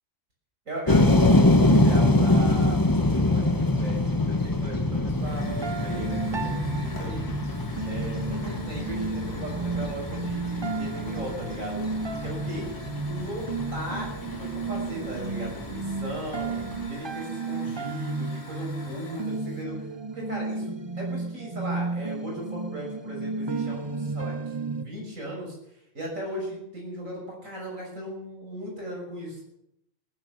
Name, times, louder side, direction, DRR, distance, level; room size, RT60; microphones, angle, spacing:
voice 1, 0.7-7.2 7.8-11.9 12.2-12.7 13.1-16.5 16.8-25.6 25.9-29.4, right 1 dB, 85° right, -1 dB, 6.7 m, -37 dB
sound 1, 0.9-16.9, left 2 dB, 15° left, 1.1 m, -25 dB
Hiss / Fire, 5.1-19.6, left 3 dB, 55° left, 2.4 m, -47 dB
sound 2, 5.4-24.8, right 3 dB, 40° right, 0.4 m, -33 dB
18.0 x 11.0 x 6.9 m, 0.80 s
omnidirectional pair, 1.3 m